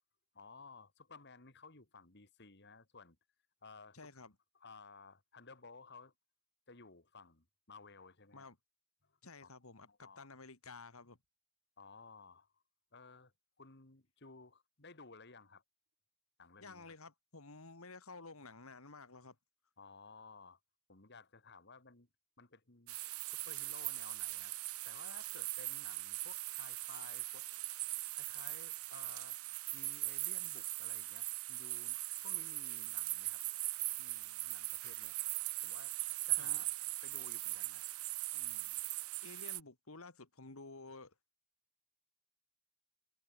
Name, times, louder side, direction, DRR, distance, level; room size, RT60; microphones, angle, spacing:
voice 1, 0.3-3.2 3.6-4.0 4.5-6.1 6.7-8.5 9.0-9.5 9.8-10.3 11.8-12.6 12.9-13.3 13.6-15.6 16.4-17.0 19.8-20.6 20.9-22.1 22.4-23.0 23.3-24.5 24.8-27.5 28.2-29.4 29.7-33.4 34.0-35.2 35.6-36.7 37.0-37.8 38.3-38.7, left 4 dB, 50° left, 2.6 m, -57 dB
voice 2, 3.9-4.3 8.3-8.6 9.2-11.2 16.6-19.4 36.4-36.6 39.2-41.1, left 3 dB, 75° left, 2.5 m, -52 dB
sound 1, 22.9-39.6, right 19 dB, 85° right, 1.1 m, -40 dB
head